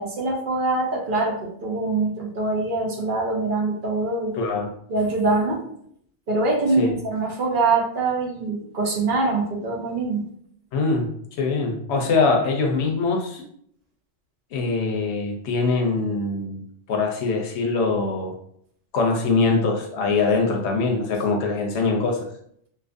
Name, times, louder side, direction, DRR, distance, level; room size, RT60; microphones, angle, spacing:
voice 1, 0.0-4.3 4.9-5.6 6.3-10.2, right 3 dB, 55° right, -2 dB, 0.7 m, -24 dB
voice 2, 4.3-4.7 6.8-6.9 10.7-11.1 11.4-13.4 14.5-18.3 18.9-22.3, left 3 dB, 75° left, 1 dB, 0.8 m, -23 dB
2.6 x 2.4 x 2.5 m, 0.67 s
omnidirectional pair, 1.2 m